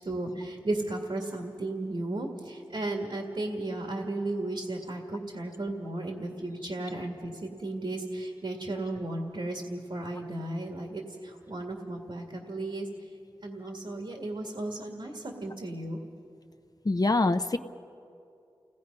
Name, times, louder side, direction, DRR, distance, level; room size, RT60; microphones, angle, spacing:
voice 1, 0.0-12.9 13.4-16.0, right 2 dB, 75° right, 1 dB, 2.1 m, -35 dB
voice 2, 16.8-17.6, left 2 dB, 45° left, 8 dB, 0.8 m, -24 dB
29.0 x 18.0 x 5.4 m, 2.5 s
cardioid pair, 40°, 9 cm